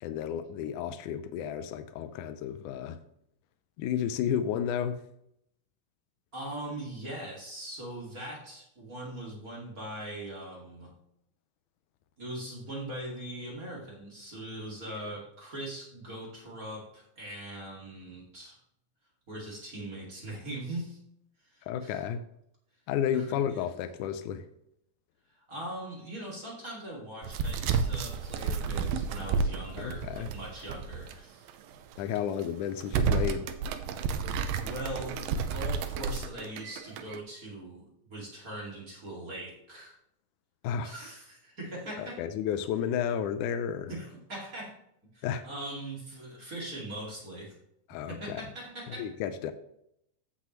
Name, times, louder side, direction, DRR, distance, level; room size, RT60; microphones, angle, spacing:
voice 1, 0.0-3.0 3.8-5.0 14.9-15.1 21.7-22.2 22.9-24.4 29.8-30.3 32.0-33.5 40.6-40.9 42.0-43.9 45.2-45.4 47.9-48.4 49.0-49.5, left 9 dB, 80° left, 9 dB, 1.9 m, -32 dB
voice 2, 6.3-10.9 12.2-18.6 19.3-21.0 21.5-22.0 23.1-23.7 25.4-31.4 34.6-40.0 40.8-42.2 43.9-44.8 45.0-47.6 48.1-49.1, right 1 dB, 30° right, -4 dB, 2.2 m, -41 dB
sound 1, 27.2-31.1 31.5-31.6 32.2-32.4 32.8-37.2, right 5 dB, 90° right, 2.5 m, -31 dB
15.0 x 6.2 x 3.1 m, 0.75 s
omnidirectional pair, 4.1 m